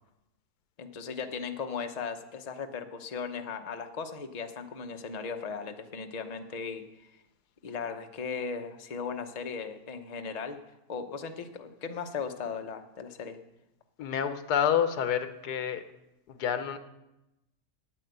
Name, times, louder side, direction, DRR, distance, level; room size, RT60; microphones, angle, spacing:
voice 1, 0.8-6.8 7.6-10.6 10.9-13.4, left 5 dB, 35° left, 5 dB, 0.8 m, -37 dB
voice 2, 14.0-15.8 16.3-16.8, left 8 dB, 85° left, 10 dB, 1.4 m, -28 dB
9.4 x 9.0 x 8.0 m, 0.93 s
omnidirectional pair, 1.6 m